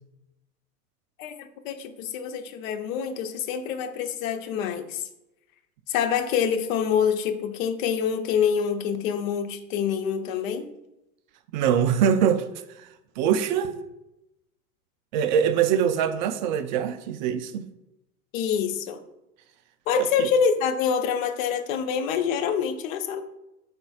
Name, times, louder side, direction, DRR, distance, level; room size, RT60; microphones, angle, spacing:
voice 1, 1.2-5.1 5.9-10.7 18.3-19.0 19.9-23.2, left 7 dB, 55° left, 1.0 m, -26 dB
voice 2, 11.5-12.5 12.8-12.9 13.2-13.7 15.1-17.7 20.0-20.3, right 8 dB, 30° right, 0.4 m, -23 dB
13.0 x 4.3 x 2.4 m
figure-of-eight pair, 95°, 49 cm